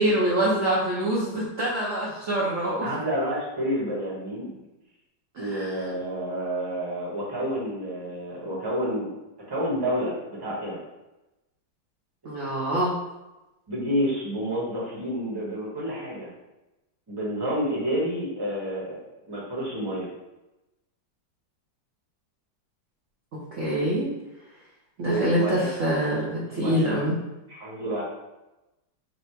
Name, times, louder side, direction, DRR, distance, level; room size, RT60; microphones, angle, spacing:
voice 1, 0.0-2.9 5.3-5.8 12.2-12.9 23.5-24.1 25.0-27.2, right 1 dB, 55° right, -6 dB, 0.9 m, -25 dB
voice 2, 2.8-4.5 5.4-9.1 9.5-10.8 13.7-16.3 17.1-20.1 25.0-25.7 26.5-27.0 27.5-28.0, equal, 15° right, -6 dB, 0.9 m, -29 dB
4.1 x 2.1 x 4.4 m, 1.0 s
omnidirectional pair, 2.0 m